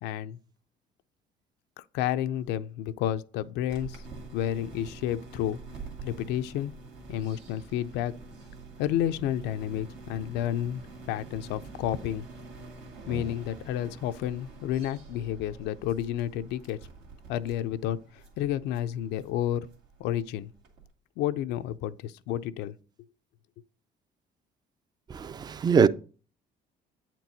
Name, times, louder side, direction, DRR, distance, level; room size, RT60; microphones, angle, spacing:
voice 1, 0.0-0.4 1.8-4.0 4.3-5.6 6.0-6.7 7.1-8.1 8.8-10.8 11.1-12.3 13.1-16.8 17.3-19.7 20.0-20.5 21.2-22.7, left 11 dB, 90° left, 0.4 m, -31 dB
sound 1, 3.7-20.9, right 3 dB, 85° right, 2.0 m, -46 dB
voice 2, 25.1-25.9, right 6 dB, 25° right, 0.3 m, -22 dB
8.6 x 4.5 x 4.0 m
cardioid pair, 110°, 17 cm